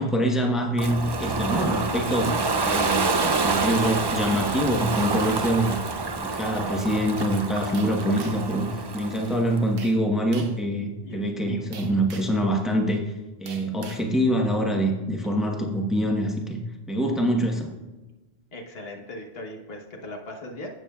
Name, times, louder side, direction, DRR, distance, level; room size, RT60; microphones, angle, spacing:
voice 1, 0.0-2.3 2.6-3.1 3.4-5.8 6.2-13.0 13.4-16.6 16.9-17.7, equal, ahead, 0 dB, 1.0 m, -25 dB
Ocean, 0.8-9.6, right 3 dB, 40° right, 0.3 m, -27 dB
sound 1, 7.7-8.6 9.8-10.0 10.3-10.6 11.7-12.4 13.5-14.1, right 5 dB, 65° right, 1.0 m, -42 dB
voice 2, 18.5-20.7, left 1 dB, 70° left, 2 dB, 1.4 m, -38 dB
16.0 x 7.0 x 2.4 m, 1.1 s
omnidirectional pair, 1.1 m